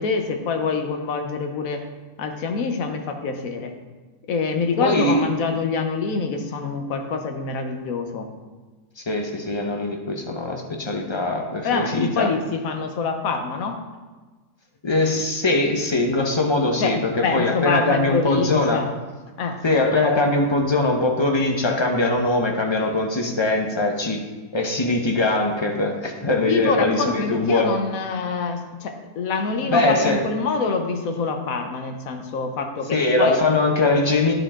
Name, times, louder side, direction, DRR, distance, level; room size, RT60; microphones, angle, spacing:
voice 1, 0.0-1.8 2.2-3.7 4.3-8.3 11.6-13.8 16.8-17.0 17.2-18.9 19.4-19.6 26.5-33.4, left 4 dB, 65° left, 5 dB, 1.2 m, -25 dB
voice 2, 4.8-5.3 9.1-12.3 14.8-18.8 19.6-24.2 24.5-27.7 29.7-30.2 32.9-34.3, left 2 dB, 25° left, 2 dB, 0.6 m, -21 dB
11.5 x 5.0 x 3.7 m, 1.3 s
omnidirectional pair, 1.7 m